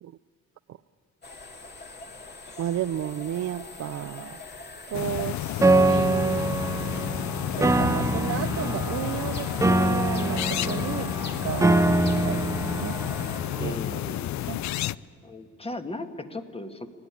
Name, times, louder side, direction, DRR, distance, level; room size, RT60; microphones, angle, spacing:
sound 1, 1.2-13.4, left 3 dB, 35° left, 2.4 m, -43 dB
voice 1, 2.6-4.4 4.9-6.5 7.6-11.1 11.4-13.0 13.5-13.8 14.5-14.6, right 12 dB, 55° right, 10 dB, 0.5 m, -33 dB
sound 2, 4.9-15.0, left 13 dB, 65° left, 0.5 m, -31 dB
Piano, 5.6-13.6, right 2 dB, 10° right, 0.7 m, -24 dB
voice 2, 13.6-14.5 15.2-16.9, left 2 dB, 20° left, 6 dB, 1.8 m, -37 dB
24.5 x 17.5 x 10.0 m, 2.2 s
cardioid pair, 90°, 30 cm